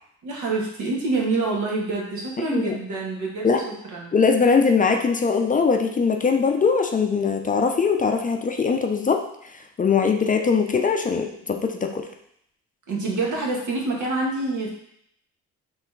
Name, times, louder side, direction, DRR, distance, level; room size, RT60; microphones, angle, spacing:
voice 1, 0.2-3.6 3.9-4.2 12.9-14.7, right 3 dB, 75° right, -2 dB, 1.3 m, -26 dB
voice 2, 4.1-9.2 9.8-12.0, left 5 dB, 25° left, 4 dB, 0.4 m, -21 dB
3.5 x 3.1 x 4.5 m, 0.72 s
cardioid pair, 90°, 30 cm